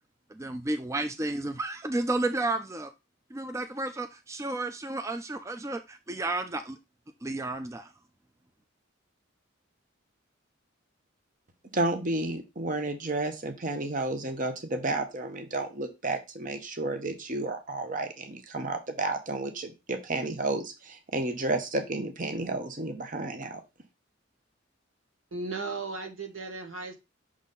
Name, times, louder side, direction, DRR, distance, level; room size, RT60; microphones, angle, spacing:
voice 1, 0.4-2.9 3.3-6.8 7.2-7.9, right 2 dB, 15° right, 0.3 m, -32 dB
voice 2, 11.7-23.6, right 2 dB, 40° right, 0.9 m, -31 dB
voice 3, 25.3-26.9, right 3 dB, 80° right, 1.7 m, -36 dB
6.3 x 4.1 x 3.9 m
head